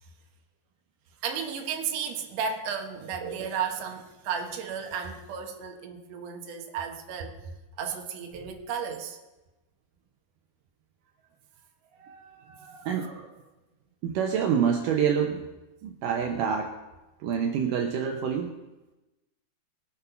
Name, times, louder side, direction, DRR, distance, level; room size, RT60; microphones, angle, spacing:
voice 1, 1.2-7.3 7.8-9.2, right 6 dB, 60° right, 3 dB, 1.7 m, -33 dB
voice 2, 12.0-13.3 14.0-15.5 15.8-16.7 17.2-18.6, right 7 dB, 85° right, 4 dB, 1.8 m, -27 dB
21.5 x 7.5 x 5.8 m, 1.1 s
omnidirectional pair, 5.1 m